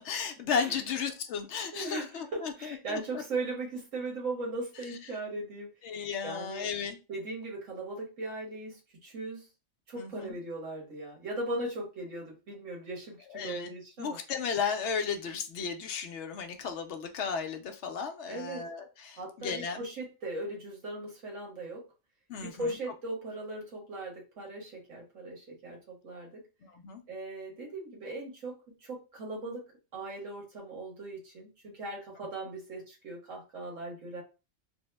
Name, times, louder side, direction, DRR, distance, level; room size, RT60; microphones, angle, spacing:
voice 1, 0.0-3.2 5.8-7.0 9.9-10.4 13.3-13.7 14.0-19.8 22.3-22.5 26.6-27.0, left 6 dB, 70° left, 6 dB, 0.8 m, -34 dB
voice 2, 1.7-5.7 6.2-6.7 7.1-9.5 9.9-13.2 13.4-14.2 18.3-18.7 19.2-21.8 22.4-26.4 27.1-29.7 29.9-34.2, right 2 dB, 90° right, -1 dB, 1.6 m, -38 dB
3.4 x 2.0 x 3.2 m, 0.30 s
omnidirectional pair, 1.3 m